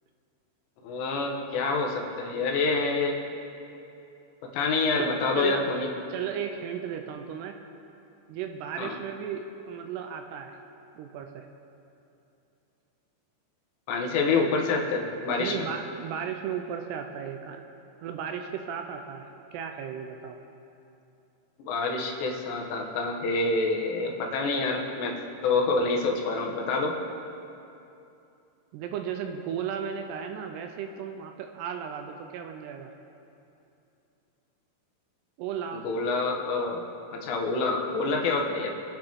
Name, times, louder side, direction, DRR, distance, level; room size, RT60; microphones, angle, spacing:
voice 1, 0.8-3.1 4.5-5.9 8.8-9.0 13.9-15.7 21.6-27.0 35.7-36.8 37.1-38.7, left 3 dB, 75° left, 1 dB, 3.3 m, -27 dB
voice 2, 6.1-7.6 8.3-10.6 11.0-11.5 15.4-17.6 18.0-20.4 28.7-32.9 35.4-35.8, right 8 dB, 85° right, 5 dB, 2.5 m, -35 dB
26.0 x 9.0 x 3.6 m, 2.8 s
omnidirectional pair, 5.3 m